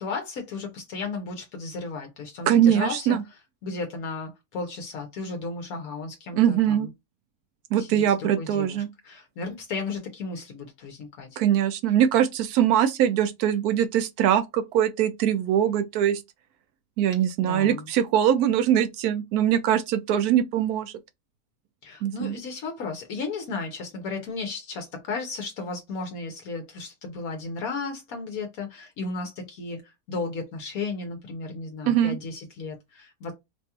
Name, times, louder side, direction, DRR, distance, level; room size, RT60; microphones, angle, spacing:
voice 1, 0.0-3.2 3.6-6.9 7.8-11.4 17.4-17.9 21.8-33.3, left 4 dB, 70° left, 1.2 m, -34 dB
voice 2, 2.5-3.2 6.4-6.9 7.7-8.9 11.4-16.2 17.0-20.9 22.0-22.4 31.9-32.2, right 10 dB, 80° right, 1.1 m, -22 dB
4.8 x 2.3 x 2.8 m
omnidirectional pair, 1.6 m